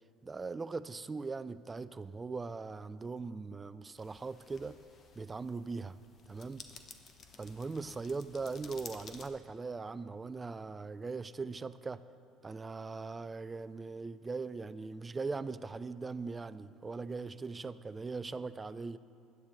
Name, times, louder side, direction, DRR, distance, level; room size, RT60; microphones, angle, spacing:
voice 1, 0.2-4.8 5.2-6.0 6.3-6.7 7.4-12.0 12.4-19.0, right 4 dB, 25° right, 15 dB, 0.4 m, -40 dB
sound 1, 4.0-9.3, left 5 dB, 50° left, 1.1 m, -53 dB
16.0 x 10.5 x 3.2 m, 2.5 s
hypercardioid pair, 70°, 0 cm